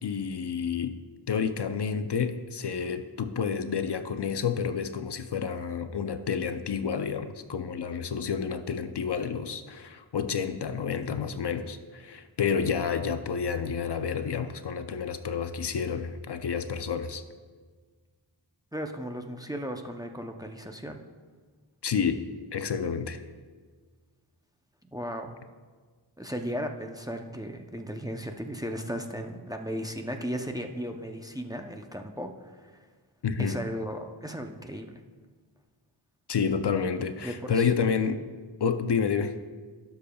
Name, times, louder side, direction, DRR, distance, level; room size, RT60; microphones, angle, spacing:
voice 1, 0.0-1.0 1.3-17.2 21.8-22.2 22.5-23.2 33.2-33.6 36.3-38.2 38.6-39.4, left 6 dB, 60° left, 9 dB, 0.6 m, -29 dB
voice 2, 18.7-21.0 24.9-25.4 26.2-32.9 33.4-35.0 37.2-37.7, equal, 10° right, 4 dB, 0.6 m, -36 dB
16.5 x 6.9 x 2.3 m, 1.5 s
wide cardioid pair, 70°, 47 cm